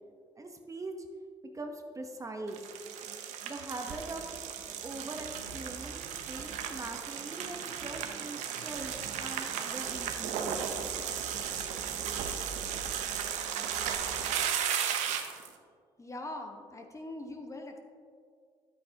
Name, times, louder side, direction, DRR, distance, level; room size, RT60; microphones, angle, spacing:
voice 1, 0.4-0.9 1.5-2.7 3.4-4.2 4.8-8.9 9.2-10.6, right 2 dB, 25° right, 4 dB, 1.0 m, -42 dB
sound 1, 2.5-15.5, right 8 dB, 80° right, 0.7 m, -35 dB
voice 2, 16.0-17.8, left 2 dB, 25° left, 3 dB, 1.2 m, -42 dB
10.0 x 8.7 x 2.9 m, 2.1 s
supercardioid pair, 60°, 12 cm